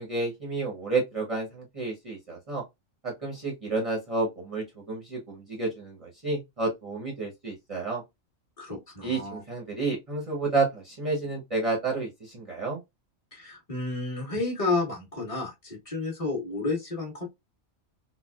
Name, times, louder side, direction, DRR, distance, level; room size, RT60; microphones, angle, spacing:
voice 1, 0.0-2.6 3.0-8.0 9.0-12.8, right 3 dB, 30° right, 0.7 m, -30 dB
voice 2, 8.6-9.4 13.3-17.3, left 3 dB, 25° left, 1.2 m, -31 dB
3.9 x 2.1 x 2.3 m
omnidirectional pair, 1.4 m